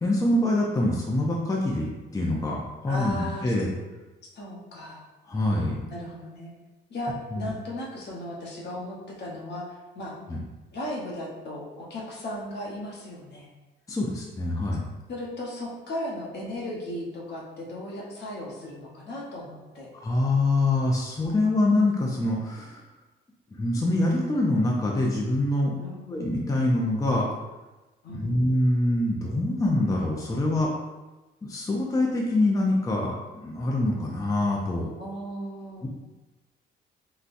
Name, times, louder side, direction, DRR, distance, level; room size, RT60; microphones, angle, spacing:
voice 1, 0.0-3.7 5.3-5.9 7.3-7.5 10.3-10.4 13.9-14.9 19.9-22.8 23.5-25.7 26.1-27.3 28.1-30.7 31.4-34.9 35.8-35.9, left 1 dB, 15° left, -2 dB, 0.5 m, -25 dB
voice 2, 2.9-3.5 4.3-5.0 5.9-6.5 6.9-9.6 9.9-10.1 10.7-13.5 15.1-19.9 25.8-26.2 28.0-28.4 35.0-35.9, left 1 dB, 60° left, -4 dB, 0.9 m, -36 dB
3.9 x 2.2 x 2.5 m, 1.1 s
cardioid pair, 90°, 20 cm